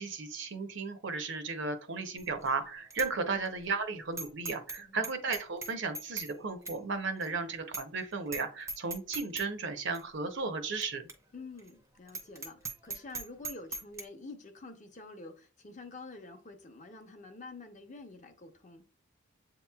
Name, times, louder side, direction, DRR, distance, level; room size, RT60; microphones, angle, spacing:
voice 1, 0.0-11.0, right 4 dB, 60° right, 0.6 m, -35 dB
Bicycle bell, 2.2-2.5 2.9-3.1 3.5-3.6 4.2-4.8 5.0-6.3 6.7-6.8 7.2-7.3 7.7-8.0 8.3-8.4 8.7-9.5 9.9-10.0 10.8-10.9 11.1-11.2 11.6-11.7 12.1-14.0, right 3 dB, 15° right, 0.5 m, -39 dB
voice 2, 4.8-5.1 11.3-18.8, left 3 dB, 35° left, 0.7 m, -48 dB
7.7 x 2.9 x 2.3 m
head